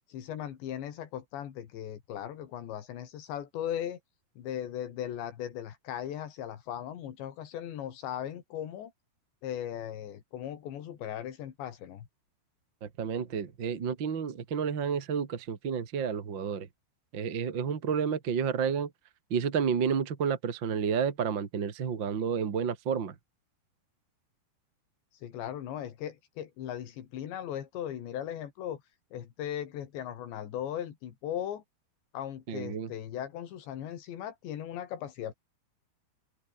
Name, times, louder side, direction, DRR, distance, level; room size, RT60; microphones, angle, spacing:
voice 1, 0.1-4.0 4.4-8.9 9.4-12.1 25.2-28.8 29.1-31.6 32.1-35.3, left 10 dB, 85° left, 4.7 m, -38 dB
voice 2, 12.8-16.7 17.1-18.9 19.3-23.1 32.5-32.9, right 7 dB, 40° right, 1.9 m, -30 dB
open air
omnidirectional pair, 4.9 m